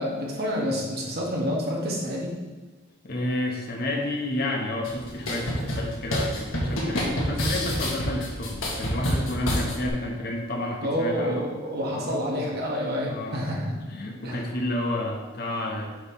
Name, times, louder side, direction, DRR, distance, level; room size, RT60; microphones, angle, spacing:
voice 1, 0.0-2.3 10.8-13.8 14.2-14.4, equal, 50° right, -3 dB, 1.6 m, -28 dB
voice 2, 3.0-11.5 11.9-12.2 13.1-13.4 13.9-15.9, left 1 dB, 50° left, 1 dB, 1.0 m, -30 dB
sound 1, 4.8-9.9, equal, 90° left, 1.5 m, -28 dB
8.0 x 3.2 x 5.4 m, 1.3 s
head